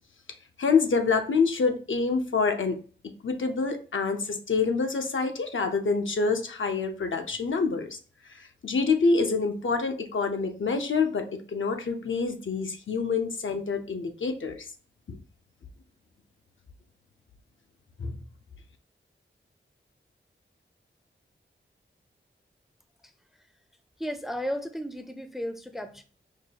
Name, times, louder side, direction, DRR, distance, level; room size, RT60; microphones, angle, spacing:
voice 1, 0.6-2.8 3.2-8.0 8.3-14.6 15.1-15.2 18.0-18.2, left 4 dB, 75° left, 5 dB, 0.6 m, -26 dB
voice 2, 24.0-26.0, equal, ahead, 8 dB, 0.4 m, -34 dB
4.7 x 2.3 x 2.8 m, 0.39 s
wide cardioid pair, 85°, 20 cm